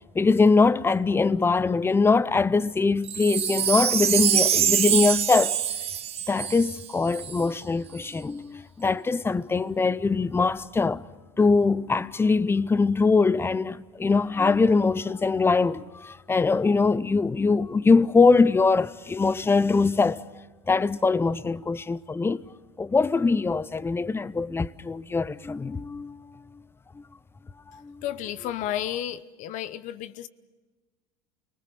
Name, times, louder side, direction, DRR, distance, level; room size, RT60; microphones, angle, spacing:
voice 1, 0.1-5.6 6.3-11.0 11.4-20.2 20.7-22.4 22.8-26.2 27.7-28.0, left 4 dB, 15° left, 0.7 m, -22 dB
Wind chime, 3.0-7.4 8.0-8.1, right 9 dB, 40° right, 1.2 m, -25 dB
voice 2, 28.0-30.3, left 11 dB, 55° left, 0.9 m, -32 dB
29.5 x 20.0 x 6.8 m
hypercardioid pair, 90°, 15 cm